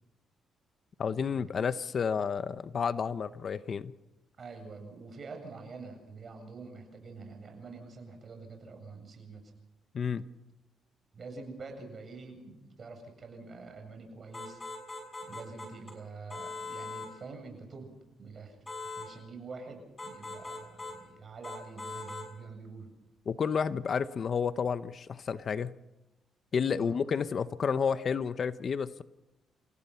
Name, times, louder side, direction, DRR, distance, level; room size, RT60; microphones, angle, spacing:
voice 1, 1.0-3.9 9.9-10.2 23.3-25.7 26.5-29.0, left 6 dB, 50° left, 13 dB, 0.8 m, -31 dB
voice 2, 4.4-9.5 11.1-14.6 15.2-17.9 18.2-22.9 26.7-27.0, right 4 dB, 45° right, 5 dB, 7.7 m, -46 dB
sound 1, 14.3-16.0 16.3-17.1 18.7-19.1 20.0-21.0 21.4-22.3, left 3 dB, 20° left, 6.4 m, -41 dB
29.0 x 16.5 x 5.8 m, 1.0 s
cardioid pair, 90°, 0 cm